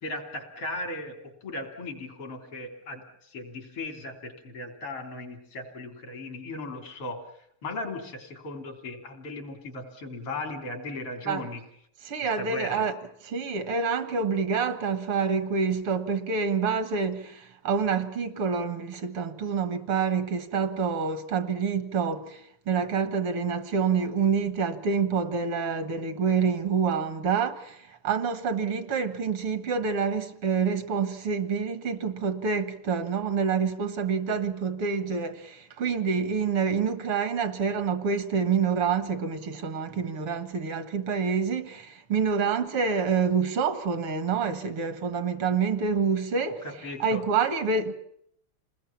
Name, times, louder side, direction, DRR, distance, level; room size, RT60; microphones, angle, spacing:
voice 1, 0.0-7.3 7.6-11.6 12.4-12.9 46.6-47.2, left 2 dB, 90° left, 4.2 m, -37 dB
voice 2, 12.1-12.9 13.3-22.4 22.7-46.6 47.0-47.9, right 6 dB, 75° right, 2.4 m, -27 dB
28.0 x 20.0 x 7.3 m
omnidirectional pair, 2.4 m